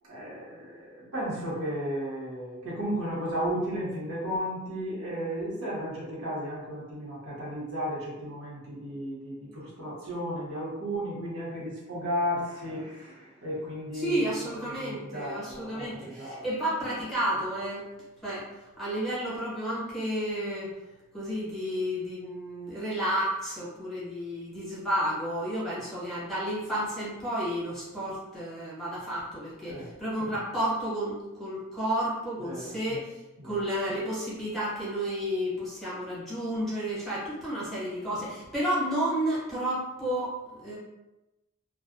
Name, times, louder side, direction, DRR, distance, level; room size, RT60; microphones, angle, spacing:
voice 1, 0.0-16.5 29.7-29.9 32.4-32.8 33.4-33.6, equal, 85° right, -7 dB, 1.0 m, -34 dB
voice 2, 13.9-17.8 18.2-18.5 18.8-20.7 21.1-33.1 33.4-40.8, right 1 dB, ahead, -9 dB, 0.8 m, -31 dB
2.4 x 2.1 x 2.5 m, 1.0 s
head